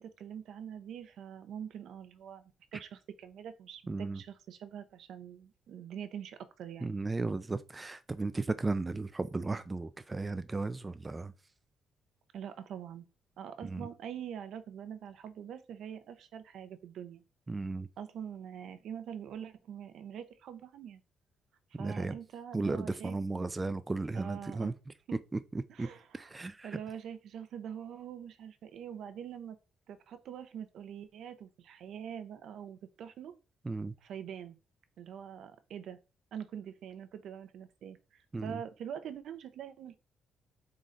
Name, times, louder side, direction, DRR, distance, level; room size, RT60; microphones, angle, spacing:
voice 1, 0.0-7.0 12.3-13.0 13.4-17.2 18.0-21.0 21.8-23.5 24.1-24.7 25.1-25.2 25.7-29.6 29.9-33.3 34.0-34.6 35.0-36.0 36.3-39.9, right 8 dB, 75° right, 0.6 m, -44 dB
voice 2, 3.9-4.2 6.8-11.3 13.6-13.9 17.5-17.9 21.7-22.1 22.5-24.7 25.8-25.9 26.1-26.7 33.7-33.9 38.3-38.6, right 3 dB, 20° right, 0.3 m, -35 dB
3.8 x 3.2 x 3.8 m
cardioid pair, 90°, 0 cm